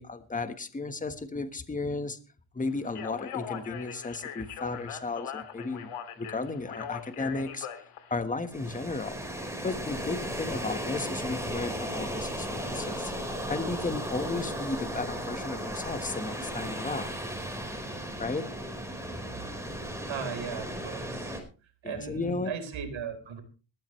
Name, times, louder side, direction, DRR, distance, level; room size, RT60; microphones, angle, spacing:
voice 1, 0.0-2.2 2.5-5.9 6.2-7.7 8.1-9.2 9.6-13.1 13.5-17.1 18.2-18.5 21.8-22.5, left 3 dB, 15° left, 9 dB, 1.4 m, -34 dB
Speech, 2.8-8.2, left 9 dB, 90° left, 2.6 m, -40 dB
sound 1, 8.5-21.4, equal, 5° right, 4.6 m, -35 dB
voice 2, 20.1-21.3 21.8-23.4, right 6 dB, 65° right, 7 dB, 4.4 m, -37 dB
20.5 x 14.0 x 3.2 m, 0.34 s
cardioid pair, 135°, 50 cm